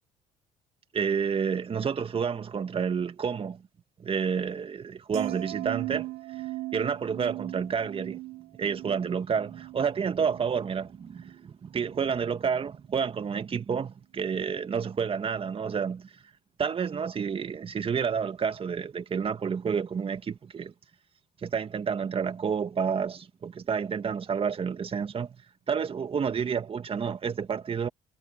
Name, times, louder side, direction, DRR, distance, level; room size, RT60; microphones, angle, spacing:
voice 1, 0.9-3.6 4.0-6.1 6.4-6.5 6.7-8.2 8.6-16.1 16.6-20.7 21.4-25.4 25.7-27.9, right 6 dB, 35° right, 2.0 m, -29 dB
sound 1, 5.1-11.4 11.7-12.1, right 19 dB, 75° right, 4.1 m, -38 dB
supercardioid pair, 75°, 16 cm